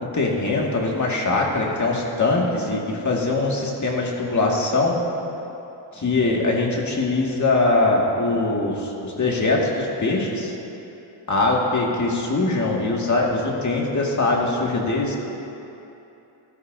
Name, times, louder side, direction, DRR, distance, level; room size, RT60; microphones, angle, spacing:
voice 1, 0.1-5.0 5.9-10.5 11.3-15.2, left 2 dB, 40° left, -1 dB, 2.1 m, -22 dB
16.5 x 13.0 x 2.7 m, 2.9 s
cardioid pair, 90°, 46 cm